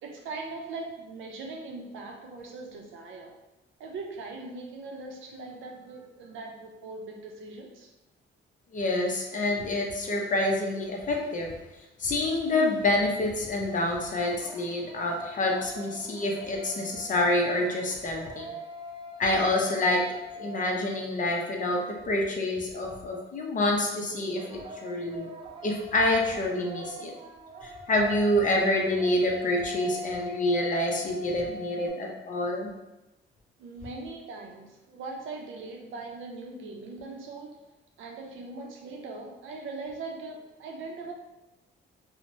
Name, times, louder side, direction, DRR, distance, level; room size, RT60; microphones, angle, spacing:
voice 1, 0.0-3.3 3.8-7.9 33.6-37.6 38.0-41.1, right 3 dB, 80° right, 1 dB, 0.5 m, -40 dB
voice 2, 8.7-11.6 12.0-18.5 19.2-20.1 20.4-25.3 25.6-27.1 27.6-32.7, left 1 dB, 40° left, 0 dB, 0.6 m, -27 dB
sound 1, 13.7-21.5 24.1-31.9, equal, 25° right, 0.4 m, -43 dB
2.9 x 2.1 x 2.6 m, 1.0 s
cardioid pair, 90°, 20 cm